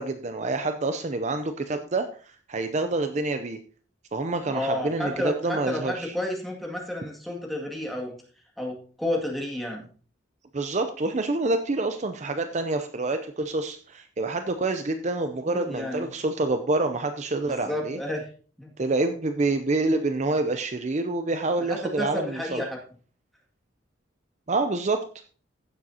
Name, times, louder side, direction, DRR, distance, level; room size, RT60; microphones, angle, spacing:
voice 1, 0.0-3.6 4.1-6.1 10.5-18.0 18.8-22.6 24.5-25.1, right 2 dB, 40° right, 8 dB, 0.6 m, -27 dB
voice 2, 4.5-8.1 8.6-9.9 15.5-16.1 17.5-18.2 18.6-18.7 21.7-22.8, left 1 dB, ahead, -2 dB, 2.1 m, -31 dB
15.5 x 7.4 x 2.8 m, 0.41 s
head